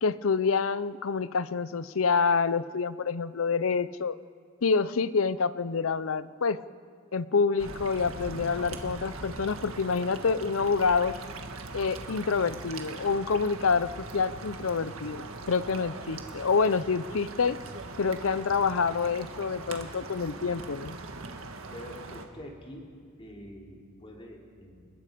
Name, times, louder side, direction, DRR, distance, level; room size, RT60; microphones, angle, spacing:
voice 1, 0.0-4.2 4.6-6.6 7.1-11.2 11.7-17.6 18.0-21.0, left 5 dB, 75° left, 16 dB, 0.6 m, -27 dB
sound 1, 7.6-22.3, right 3 dB, 80° right, 1.7 m, -41 dB
voice 2, 21.7-22.9 23.2-24.9, equal, 25° left, -1 dB, 3.2 m, -45 dB
29.5 x 20.5 x 5.2 m, 2.3 s
head